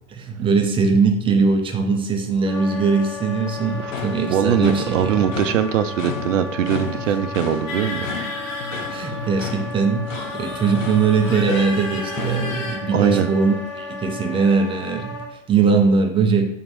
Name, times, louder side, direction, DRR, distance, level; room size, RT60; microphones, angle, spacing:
voice 1, 0.1-5.3 8.9-16.5, right 4 dB, 15° right, 5 dB, 0.4 m, -20 dB
Wind instrument woodwind instrument, 2.5-15.3, left 3 dB, ahead, 0.8 m, -34 dB
sound 1, 3.6-12.6, left 6 dB, 75° left, 0.6 m, -34 dB
voice 2, 4.3-8.1 12.9-13.3, right 9 dB, 70° right, 11 dB, 0.5 m, -21 dB
sound 2, 7.7-9.5 10.1-12.8, left 2 dB, 50° left, 1.4 m, -33 dB
3.6 x 3.0 x 3.9 m, 0.83 s
figure-of-eight pair, 80°, 40 cm